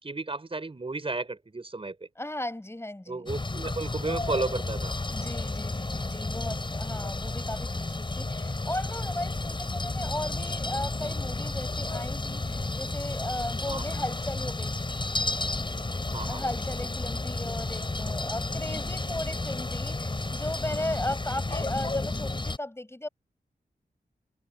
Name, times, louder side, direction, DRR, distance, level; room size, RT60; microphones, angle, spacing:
voice 1, 0.0-2.0 3.1-5.0 13.7-13.8 16.1-16.4, right 3 dB, 35° right, 5.5 m, -33 dB
voice 2, 2.2-3.3 5.1-14.7 16.2-23.1, left 1 dB, 15° left, 7.6 m, -36 dB
sound 1, 3.3-22.6, left 2 dB, 30° left, 5.9 m, -32 dB
wide cardioid pair, 75°, 16 cm